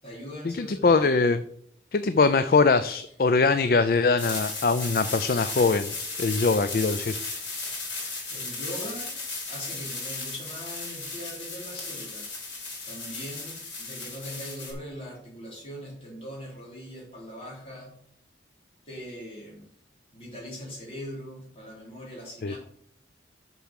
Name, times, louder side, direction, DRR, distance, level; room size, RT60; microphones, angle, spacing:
voice 1, 0.0-1.2 8.0-9.2 9.5-12.3 12.8-17.9 18.9-19.7 20.1-22.6, equal, 30° left, -4 dB, 4.0 m, -41 dB
voice 2, 0.5-1.4 1.9-5.9 6.2-7.1 22.4-22.6, left 4 dB, 50° left, 12 dB, 0.4 m, -22 dB
sound 1, 4.2-14.7, left 3 dB, 90° left, 4.1 m, -35 dB
6.8 x 6.1 x 6.4 m, 0.66 s
head